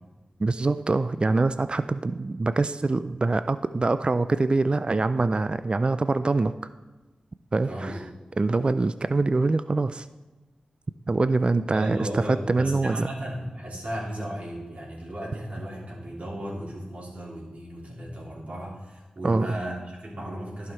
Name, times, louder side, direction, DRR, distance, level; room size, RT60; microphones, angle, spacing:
voice 1, 0.4-6.5 7.5-7.9 8.4-10.1 11.1-13.1 19.2-19.5, right 3 dB, 40° right, 12 dB, 0.4 m, -24 dB
voice 2, 7.6-8.1 11.7-20.7, right 1 dB, 60° right, -4 dB, 3.2 m, -35 dB
11.0 x 5.8 x 4.5 m, 1.2 s
cardioid pair, 40°, 3 cm